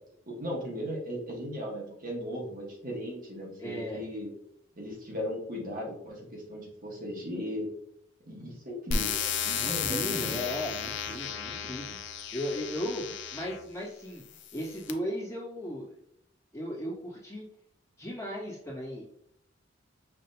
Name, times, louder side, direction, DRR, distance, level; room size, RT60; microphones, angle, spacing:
voice 1, 0.3-4.3 4.8-7.7 8.3-10.5, equal, 45° right, -3 dB, 1.2 m, -37 dB
voice 2, 3.6-4.0 9.6-12.0 12.3-15.9 16.5-17.4 18.0-19.0, equal, 15° left, -7 dB, 1.6 m, -36 dB
sound 1, 8.9-13.6 14.3-14.9, left 7 dB, 65° left, 0.5 m, -33 dB
5.8 x 3.2 x 2.7 m, 0.73 s
head